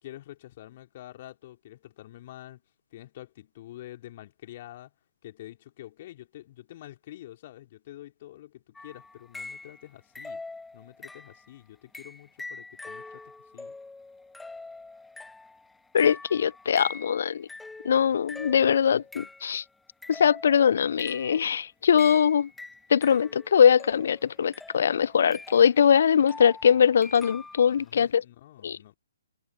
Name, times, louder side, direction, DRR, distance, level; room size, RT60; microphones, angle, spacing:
voice 1, 0.0-2.6 2.9-4.9 5.2-10.4 10.7-13.7 27.7-29.0, left 14 dB, 40° left, 3.9 m, -47 dB
sound 1, 8.7-9.9 10.1-11.5 11.9-19.6 20.0-21.5 22.0-27.8, left 3 dB, 5° left, 1.7 m, -44 dB
voice 2, 15.9-17.5 17.8-19.6 20.1-22.5 22.9-28.2 28.6-28.9, left 7 dB, 55° left, 0.6 m, -22 dB
figure-of-eight pair, 130°, 0 cm